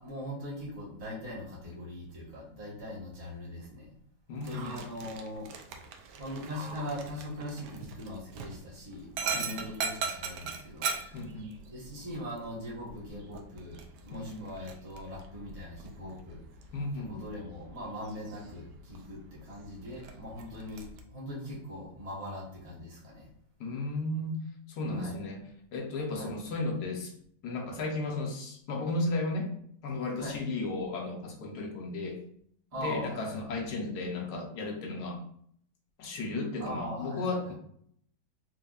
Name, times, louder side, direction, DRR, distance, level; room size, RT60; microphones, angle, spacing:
voice 1, 0.0-3.9 4.3-5.5 6.2-11.2 11.7-16.4 17.0-23.3 24.9-25.2 26.1-26.3 30.2-30.4 32.7-33.6 36.6-37.5, left 1 dB, 25° right, -6 dB, 0.9 m, -41 dB
voice 2, 4.3-4.8 9.3-9.7 11.1-11.5 14.1-14.5 16.7-17.2 23.6-24.4 24.7-25.4 25.7-27.1 27.4-29.5 29.8-32.2 32.7-35.2 36.0-37.5, left 2 dB, 70° left, 2 dB, 1.2 m, -34 dB
Dog, 4.4-21.0, right 6 dB, 75° right, 1.1 m, -41 dB
4.3 x 2.7 x 2.3 m, 0.65 s
omnidirectional pair, 1.9 m